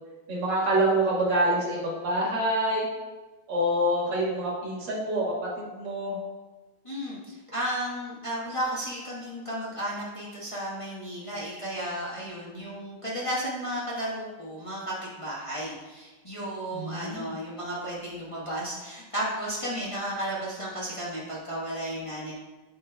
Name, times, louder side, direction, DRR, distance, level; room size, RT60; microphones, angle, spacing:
voice 1, 0.3-2.9 3.5-6.2 16.7-17.3, right 1 dB, 60° right, -4 dB, 2.1 m, -26 dB
voice 2, 6.8-22.3, right 1 dB, 20° left, -8 dB, 1.0 m, -33 dB
8.7 x 5.4 x 2.3 m, 1.2 s
omnidirectional pair, 2.3 m